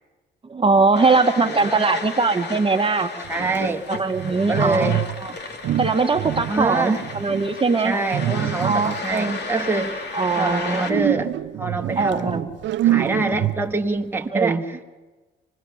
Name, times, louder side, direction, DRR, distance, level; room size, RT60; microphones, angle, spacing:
voice 1, 0.5-3.1 3.9-5.3 5.8-7.9 8.6-9.4 10.1-10.9 12.0-12.5 14.3-14.6, right 4 dB, 25° right, 5 dB, 1.4 m, -21 dB
sound 1, 1.0-10.9, left 3 dB, 60° left, 3.0 m, -34 dB
sound 2, 3.2-5.3 5.6-7.5 8.1-9.2 10.9-13.9, right 13 dB, 70° right, 0.6 m, -26 dB
voice 2, 3.3-3.9 4.2-5.0 6.5-7.0 7.8-10.1 10.4-11.3 11.6-12.5 12.8-14.8, right 3 dB, 10° right, 3 dB, 1.5 m, -25 dB
25.5 x 20.0 x 7.2 m, 1.2 s
cardioid pair, 90°, 20 cm